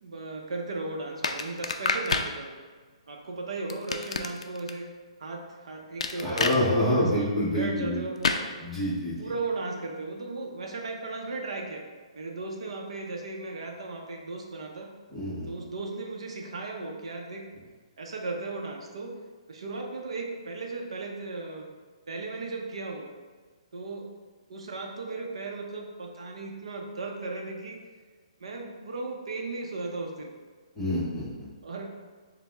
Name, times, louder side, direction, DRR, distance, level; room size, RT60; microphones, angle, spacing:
voice 1, 0.0-2.6 3.1-4.9 5.2-7.3 7.6-8.4 9.2-11.8 12.1-14.9 15.5-17.5 18.0-19.2 19.5-21.7 22.1-23.1 23.7-24.1 24.5-27.8 28.4-30.3 31.6-31.9, right 3 dB, 60° right, 2 dB, 0.5 m, -36 dB
sound 1, 1.2-2.3 3.7-4.7 6.0-6.6 8.2-8.4, left 4 dB, 75° left, 0.3 m, -28 dB
voice 2, 6.2-8.0 8.6-9.3 15.1-15.5 30.8-31.5, left 1 dB, ahead, -12 dB, 0.7 m, -27 dB
5.3 x 2.0 x 3.4 m, 1.5 s
hypercardioid pair, 180°, 3 cm